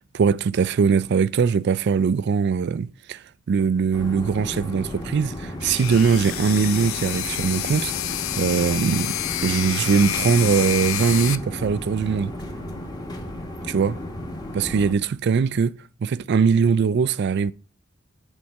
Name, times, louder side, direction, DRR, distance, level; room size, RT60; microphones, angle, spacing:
voice 1, 0.1-7.9 8.4-12.3 13.7-13.9 14.5-17.5, right 6 dB, 55° right, 0.3 m, -21 dB
sound 1, 3.9-14.9, left 1 dB, 20° left, 1.2 m, -34 dB
sound 2, 5.6-11.4, left 11 dB, 75° left, 0.5 m, -28 dB
8.6 x 4.5 x 6.4 m
head